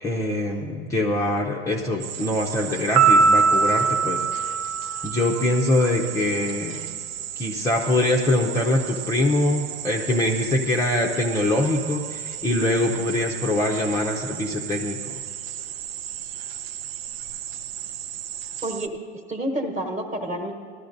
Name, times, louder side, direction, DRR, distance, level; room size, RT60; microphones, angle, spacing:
voice 1, 0.0-4.3 5.0-6.8 7.4-15.1, left 1 dB, 10° left, -2 dB, 0.6 m, -23 dB
sound 1, 2.0-18.9, right 11 dB, 60° right, 0.6 m, -35 dB
Piano, 3.0-5.5, right 4 dB, 85° right, 1.2 m, -20 dB
voice 2, 18.6-20.5, right 1 dB, 20° right, 4 dB, 1.3 m, -29 dB
19.0 x 13.0 x 2.6 m, 2.3 s
hypercardioid pair, 125°, 33 cm